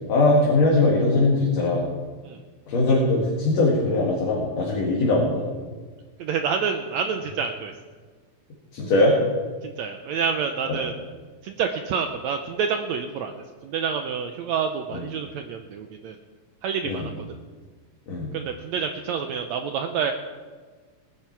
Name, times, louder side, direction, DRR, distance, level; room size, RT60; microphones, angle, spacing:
voice 1, 0.1-1.9 2.7-5.4 8.7-9.2 10.7-10.8 14.9-15.0 16.8-17.1 18.1-18.3, left 2 dB, 55° left, -3 dB, 2.9 m, -21 dB
voice 2, 6.2-7.7 9.6-10.9 11.4-13.3 13.6-16.2 16.6-17.2 18.3-20.1, right 6 dB, 80° right, 6 dB, 1.6 m, -28 dB
19.0 x 10.5 x 4.6 m, 1.4 s
omnidirectional pair, 3.9 m